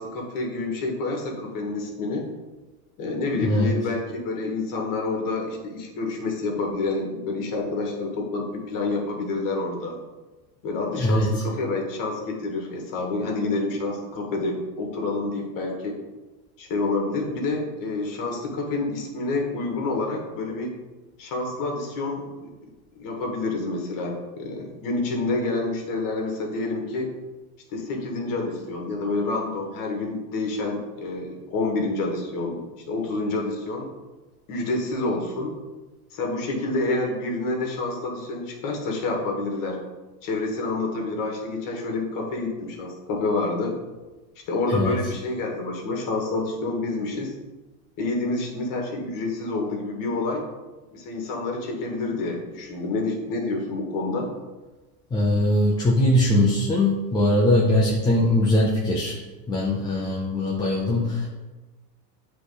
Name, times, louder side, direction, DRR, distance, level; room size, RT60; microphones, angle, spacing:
voice 1, 0.0-2.3 3.0-10.0 10.6-16.0 16.6-20.8 21.2-22.5 23.0-27.1 27.7-32.6 32.9-33.9 34.5-35.5 36.1-39.8 40.2-43.7 44.5-47.3 48.0-50.4 50.9-54.3, left 2 dB, 40° left, 0 dB, 1.6 m, -28 dB
voice 2, 3.4-3.7 11.0-11.3 44.7-45.0 55.1-59.2 59.5-61.3, left 1 dB, 10° left, -4 dB, 0.4 m, -21 dB
7.7 x 3.3 x 3.9 m, 1.2 s
supercardioid pair, 125°, 48 cm